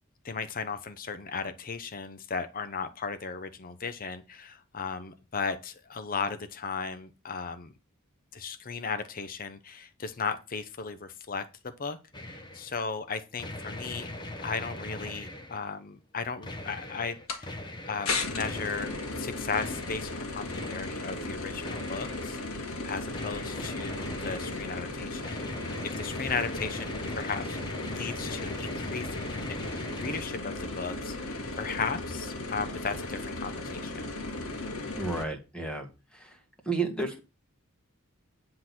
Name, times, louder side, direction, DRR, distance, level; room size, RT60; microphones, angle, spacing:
voice 1, 0.2-7.7 8.3-11.4 11.8-12.0 12.3-14.1 14.4-17.6 17.9-25.7 26.0-27.6 27.8-33.9, left 5 dB, 40° left, 10 dB, 0.7 m, -36 dB
sound 1, 12.1-12.8 13.4-15.7 16.4-19.3 19.5-21.3 21.6-22.5 23.1-30.2, left 1 dB, 20° left, 1.1 m, -41 dB
sound 2, 17.3-17.4 18.0-35.2, left 2 dB, 85° left, 1.9 m, -36 dB
voice 2, 35.0-35.9 36.1-36.4 36.7-37.2, right 3 dB, 5° left, 3 dB, 1.8 m, -32 dB
10.0 x 3.9 x 6.0 m, 0.29 s
head